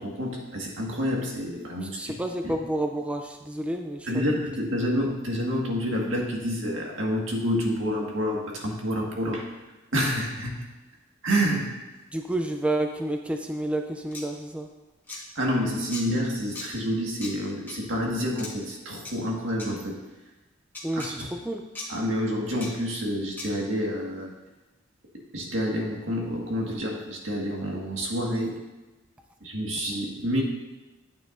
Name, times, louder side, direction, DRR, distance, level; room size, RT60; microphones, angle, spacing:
voice 1, 0.0-2.5 4.1-9.5 9.9-10.6 11.2-11.7 15.4-20.0 20.9-21.3 21.9-24.3 25.3-28.6 29.4-30.4, equal, 85° right, -1 dB, 1.8 m, -28 dB
voice 2, 1.8-4.2 12.1-14.7 20.8-21.6, right 1 dB, 5° right, 4 dB, 0.5 m, -30 dB
sound 1, 14.1-14.2 15.1-15.2 15.9-16.0 16.6-16.7 17.2-17.3 17.7-17.8 18.4-18.5 19.1-19.2 19.6-19.7 20.7-21.1 21.8-21.9 22.6-22.7 23.4-23.5, left 3 dB, 10° left, 1.5 m, -37 dB
10.0 x 8.7 x 2.6 m, 1.1 s
head